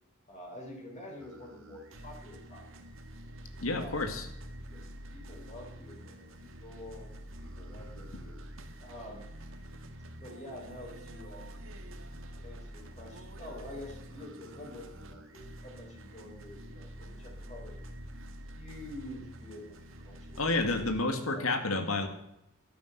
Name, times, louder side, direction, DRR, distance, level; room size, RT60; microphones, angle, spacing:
voice 1, 0.3-2.6 3.7-4.3 4.7-7.1 7.4-8.4 8.8-9.3 10.2-11.6 12.4-17.7 18.6-20.6 21.0-21.7, left 1 dB, 35° left, -2 dB, 4.1 m, -47 dB
sound 1, 1.2-21.0, right 1 dB, 65° right, 1.8 m, -47 dB
voice 2, 3.6-4.2 20.4-22.1, left 2 dB, 80° left, 7 dB, 2.1 m, -30 dB
12.5 x 10.5 x 8.0 m, 0.81 s
head